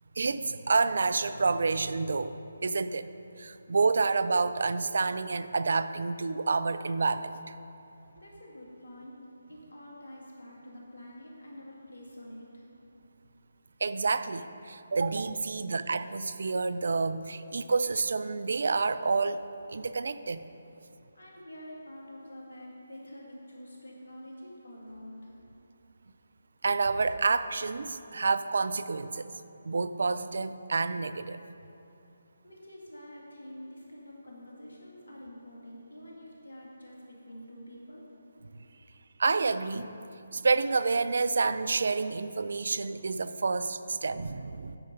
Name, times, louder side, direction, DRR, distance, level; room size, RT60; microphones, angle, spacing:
voice 1, 0.2-2.3 2.6-3.1 3.4-7.5 13.8-19.4 19.7-20.4 26.6-29.3 29.6-31.4 39.2-39.9 40.3-44.8, right 4 dB, 60° right, 13 dB, 0.3 m, -28 dB
voice 2, 8.1-9.2 9.5-12.6 21.1-25.3 32.4-38.1, equal, 75° left, -3 dB, 2.1 m, -47 dB
9.1 x 5.0 x 5.5 m, 2.7 s
figure-of-eight pair, 150°, 0 cm